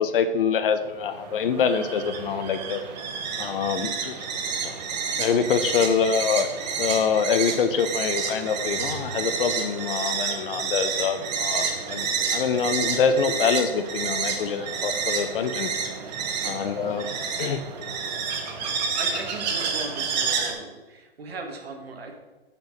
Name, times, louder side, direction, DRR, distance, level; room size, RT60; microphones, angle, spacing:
voice 1, 0.0-2.8 3.4-4.2 5.2-6.5 6.8-15.7 16.4-17.1 17.4-17.6, left 6 dB, 60° left, 10 dB, 0.7 m, -25 dB
sound 1, 0.8-20.5, right 5 dB, 45° right, 1.0 m, -29 dB
voice 2, 16.4-16.8 18.6-22.1, right 3 dB, 75° right, 3 dB, 1.5 m, -38 dB
5.3 x 4.6 x 5.2 m, 1.2 s
hypercardioid pair, 145°, 31 cm